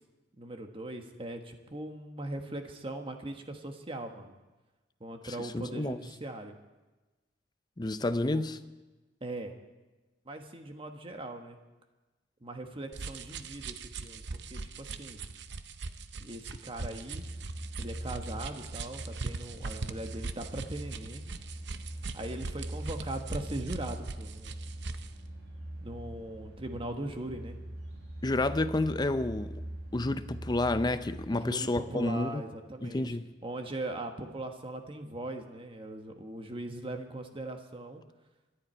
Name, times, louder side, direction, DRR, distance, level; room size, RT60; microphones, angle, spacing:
voice 1, 0.4-4.4 5.0-6.6 8.3-8.4 9.2-9.5 10.2-11.6 12.4-15.2 16.2-17.2 17.8-21.2 22.1-24.6 25.8-27.6 31.3-33.2 33.4-38.0, right 1 dB, 30° right, 1.4 m, -40 dB
voice 2, 5.4-6.0 7.8-8.6 28.2-29.6 29.9-32.4 32.8-33.3, left 2 dB, 25° left, 0.6 m, -30 dB
sound 1, 12.9-25.1, right 4 dB, 65° right, 0.7 m, -41 dB
sound 2, 17.2-31.3, right 1 dB, 90° right, 4.4 m, -42 dB
25.0 x 11.0 x 4.5 m
head